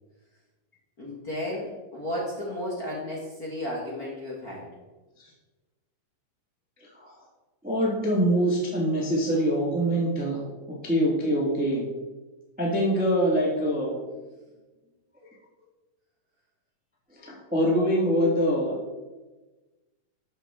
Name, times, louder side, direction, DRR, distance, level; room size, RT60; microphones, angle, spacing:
voice 1, 1.0-4.7, left 1 dB, 45° left, -4 dB, 1.2 m, -33 dB
voice 2, 7.6-10.4 10.7-11.9 12.6-14.0 17.2-18.8, equal, 10° right, -4 dB, 0.4 m, -24 dB
13.0 x 6.2 x 3.6 m, 1.2 s
omnidirectional pair, 4.0 m